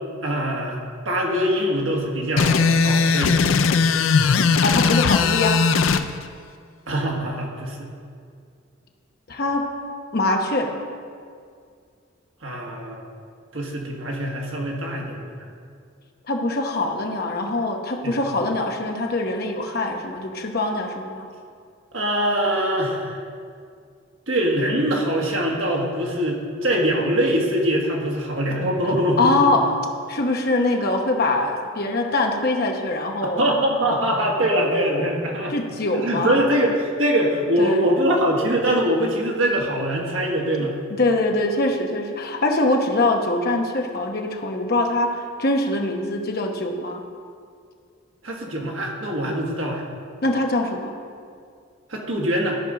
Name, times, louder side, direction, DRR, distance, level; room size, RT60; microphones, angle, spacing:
voice 1, 0.2-0.8 1.0-3.4 6.9-7.9 12.4-13.0 13.5-15.2 18.0-18.2 21.9-23.2 24.3-29.5 33.4-35.5 36.0-40.7 48.2-49.8 51.9-52.5, equal, 85° right, -1 dB, 1.6 m, -23 dB
sound 1, 2.4-6.0, left 5 dB, 90° left, 0.4 m, -18 dB
voice 2, 4.6-5.6 9.3-9.7 10.1-10.8 16.3-21.3 29.2-33.4 35.5-36.5 37.6-37.9 40.6-47.0 50.2-50.9, left 2 dB, 50° left, 2 dB, 1.0 m, -23 dB
13.0 x 5.5 x 4.9 m, 2.2 s
head